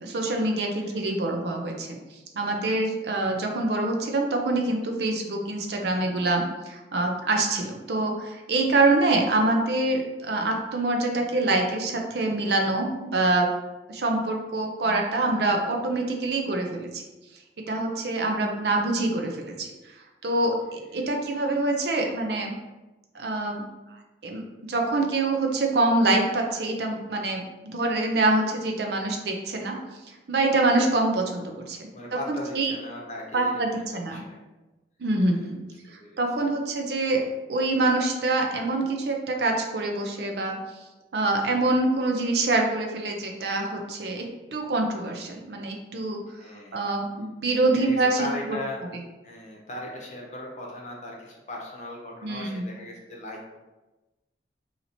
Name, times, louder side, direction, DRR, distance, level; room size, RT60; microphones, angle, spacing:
voice 1, 0.0-2.0 2.3-13.5 13.9-17.0 17.7-19.7 20.2-22.5 23.1-23.7 24.2-24.4 24.7-29.8 30.3-32.7 33.3-34.3 35.0-35.6 36.2-37.2 37.5-40.6 41.1-46.2 46.7-48.2 52.2-52.7, right 2 dB, 70° right, 2 dB, 0.5 m, -25 dB
voice 2, 20.9-21.3 21.8-21.9 31.9-34.4 35.2-35.6 36.0-36.2 46.3-46.8 47.7-48.8 49.2-53.6, left 1 dB, 40° left, -1 dB, 0.7 m, -38 dB
2.9 x 2.8 x 4.1 m, 1.1 s
head